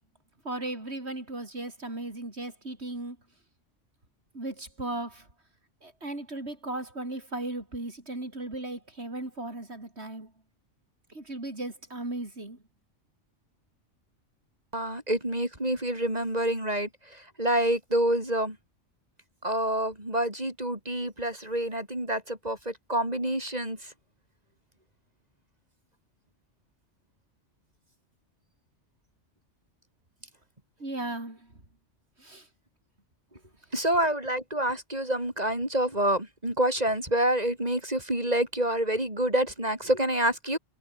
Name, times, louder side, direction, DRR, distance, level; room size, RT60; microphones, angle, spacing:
voice 1, 0.4-3.2 4.3-5.3 5.8-10.3 11.1-12.6 30.8-31.6 32.2-32.5, right 2 dB, 60° right, 5.4 m, -36 dB
voice 2, 14.7-18.6 19.4-23.8 33.7-40.6, right 1 dB, 35° right, 6.3 m, -27 dB
omnidirectional pair, 1.2 m